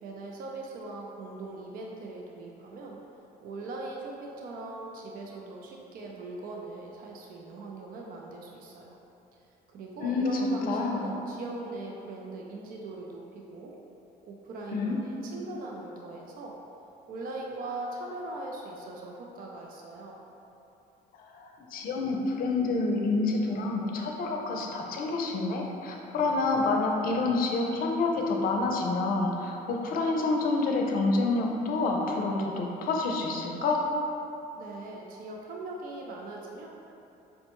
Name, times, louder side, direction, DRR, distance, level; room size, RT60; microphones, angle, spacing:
voice 1, 0.0-3.0 3.4-9.0 9.7-13.7 14.2-16.6 17.1-20.2 34.5-36.7, right 2 dB, 60° right, -1 dB, 0.5 m, -40 dB
voice 2, 10.0-10.3 10.7-11.1 14.7-15.0 21.1-33.9, left 3 dB, 60° left, 0 dB, 0.5 m, -28 dB
5.3 x 2.1 x 2.9 m, 2.9 s
cardioid pair, 110°, 17 cm